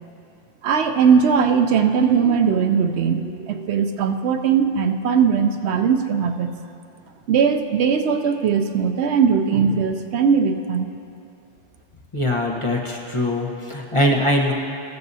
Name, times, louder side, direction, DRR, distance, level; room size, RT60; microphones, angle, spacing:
voice 1, 0.6-6.5 7.3-10.9, right 6 dB, 70° right, 7 dB, 0.8 m, -19 dB
voice 2, 12.1-14.5, left 1 dB, 30° left, -1 dB, 0.9 m, -22 dB
14.0 x 13.5 x 2.7 m, 2.6 s
omnidirectional pair, 1.2 m